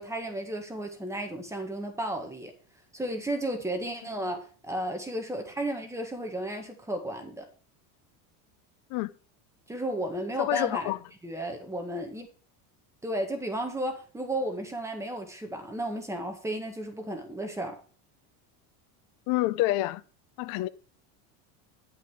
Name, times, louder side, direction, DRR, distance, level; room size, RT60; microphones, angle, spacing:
voice 1, 0.0-2.5 2.9-7.5 9.7-10.9 11.2-12.3 13.0-17.8, right 1 dB, 5° right, 1.7 m, -33 dB
voice 2, 10.4-11.0 19.3-20.0 20.4-20.7, left 17 dB, 55° left, 0.6 m, -27 dB
11.5 x 7.8 x 5.0 m
cardioid pair, 155°, 42 cm